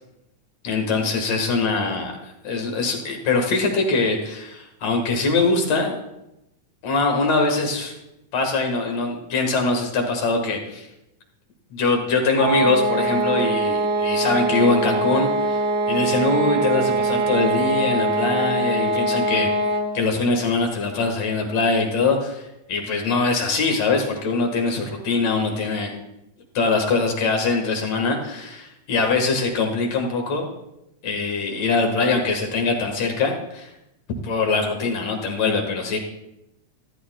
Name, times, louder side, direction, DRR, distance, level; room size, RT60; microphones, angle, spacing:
voice 1, 0.6-6.0 6.8-7.9 8.3-10.9 11.7-19.5 19.9-25.9 26.5-30.5 31.0-33.7 34.2-36.0, left 3 dB, 60° left, 2 dB, 2.7 m, -23 dB
sound 1, 12.3-20.0, right 2 dB, 85° right, 2.6 m, -22 dB
14.0 x 13.5 x 2.3 m, 0.87 s
omnidirectional pair, 3.6 m